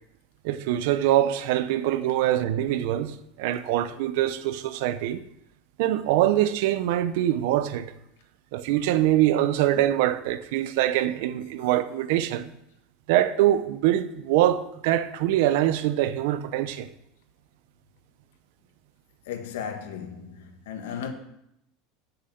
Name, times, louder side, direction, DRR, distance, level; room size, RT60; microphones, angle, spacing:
voice 1, 0.4-5.2 5.8-7.9 8.5-12.5 13.1-16.9, right 13 dB, 70° right, 0.7 m, -24 dB
voice 2, 19.2-21.1, left 7 dB, 90° left, 1.6 m, -35 dB
7.8 x 6.8 x 7.8 m
supercardioid pair, 145°, 0 cm